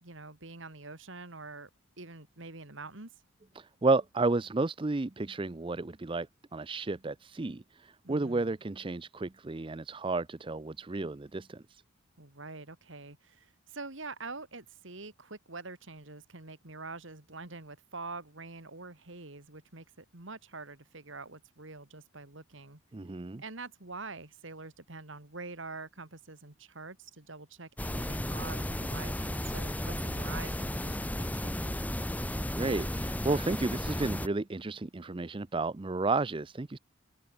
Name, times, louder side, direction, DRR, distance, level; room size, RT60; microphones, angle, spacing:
voice 1, 0.0-1.7 2.0-3.1 8.0-8.5 12.2-22.8 23.4-31.8, right 3 dB, 65° right, 2.6 m, -45 dB
voice 2, 3.6-6.3 6.5-11.8 22.9-23.4 32.6-36.8, right 3 dB, 25° right, 0.5 m, -32 dB
sound 1, 27.8-34.3, left 1 dB, 10° left, 1.6 m, -34 dB
open air
head